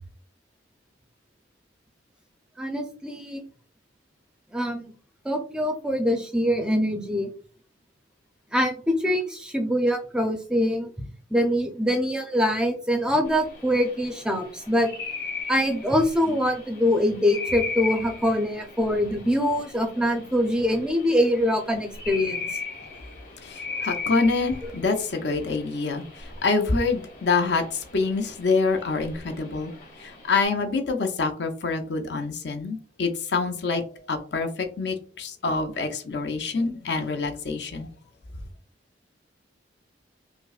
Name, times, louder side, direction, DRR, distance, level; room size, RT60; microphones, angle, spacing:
voice 1, 2.6-3.4 4.5-4.9 5.3-7.3 8.5-14.9 15.5-22.4, equal, 5° right, 0.5 m, -24 dB
sound 1, 13.3-30.4, left 4 dB, 50° left, 1.4 m, -38 dB
voice 2, 23.4-29.7 30.0-33.8 34.1-37.9, left 4 dB, 65° left, 0.6 m, -26 dB
5.1 x 2.1 x 2.4 m
head